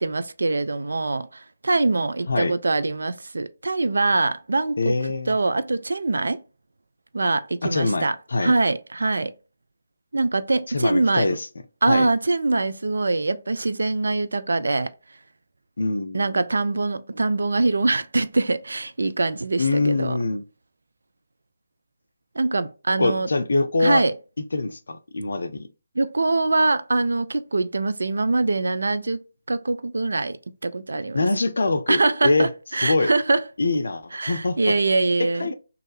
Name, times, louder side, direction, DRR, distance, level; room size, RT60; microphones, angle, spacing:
voice 1, 0.0-5.0 5.3-6.4 7.1-8.2 8.4-9.3 10.1-11.4 11.8-14.9 16.1-20.2 22.4-23.3 23.8-24.1 26.0-31.3 31.9-33.4 34.1-35.5, right 3 dB, 65° right, 0.3 m, -23 dB
voice 2, 4.8-5.4 7.6-8.5 10.7-11.5 11.9-12.1 15.8-16.4 19.6-20.4 23.0-24.0 24.5-25.7 31.1-32.5 32.8-33.1 33.6-34.8 35.2-35.5, left 3 dB, 60° left, 0.4 m, -24 dB
3.1 x 2.4 x 3.2 m
figure-of-eight pair, 150°, 0 cm